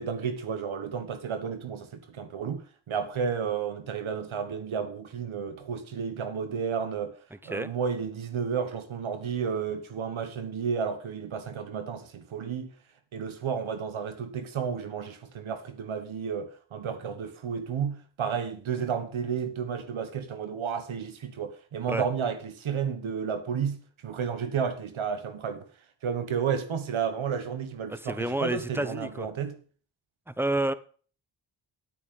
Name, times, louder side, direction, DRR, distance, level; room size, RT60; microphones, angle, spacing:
voice 1, 0.0-7.1 7.4-12.7 13.1-25.6 26.0-29.6, right 7 dB, 80° right, 1.5 m, -32 dB
voice 2, 7.3-7.7 21.9-22.0 27.9-29.3 30.3-30.7, right 1 dB, 5° right, 0.8 m, -30 dB
9.1 x 8.6 x 5.3 m
cardioid pair, 50°, 47 cm